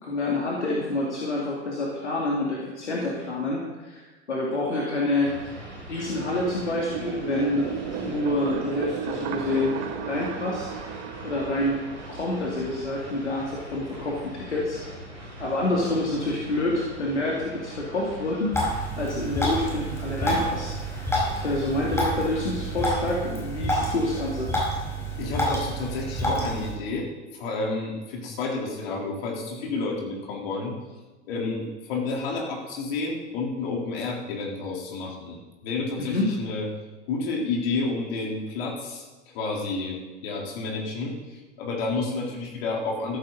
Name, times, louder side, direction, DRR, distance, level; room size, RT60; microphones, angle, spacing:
voice 1, 0.0-5.6 5.9-7.7 8.0-9.7 10.0-10.7 11.2-11.8 12.1-14.8 15.4-20.7 21.0-24.5 36.0-36.3, left 2 dB, 75° left, -3 dB, 2.4 m, -27 dB
sound 1, 5.2-23.1, right 1 dB, 80° right, 3.9 m, -42 dB
sound 2, 6.6-13.2, right 8 dB, 45° right, 1.4 m, -35 dB
sound 3, 18.5-26.7, equal, 10° left, 4.9 m, -28 dB
voice 2, 25.2-27.1 27.3-30.8 31.3-35.4 35.6-36.6 37.1-39.0 39.3-40.0 40.2-43.2, left 3 dB, 55° left, -1 dB, 3.8 m, -30 dB
14.0 x 14.0 x 4.1 m, 1.2 s
figure-of-eight pair, 80°, 35 cm